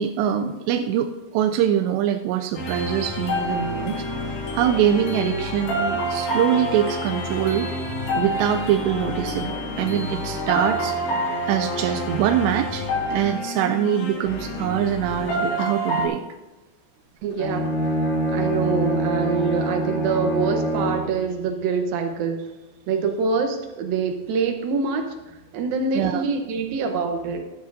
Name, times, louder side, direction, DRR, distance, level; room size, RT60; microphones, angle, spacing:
voice 1, 0.0-7.7 8.1-11.0 11.5-16.2 25.9-26.3, right 10 dB, 90° right, 6 dB, 2.7 m, -24 dB
sound 1, 2.6-16.1, equal, 75° left, 4.7 m, -28 dB
voice 2, 17.2-17.7 18.3-22.4 22.9-27.4, right 5 dB, 70° right, 5 dB, 2.5 m, -25 dB
Bowed string instrument, 17.3-21.2, right 1 dB, 35° left, 3.5 m, -25 dB
15.0 x 12.0 x 2.7 m, 1.1 s
omnidirectional pair, 4.8 m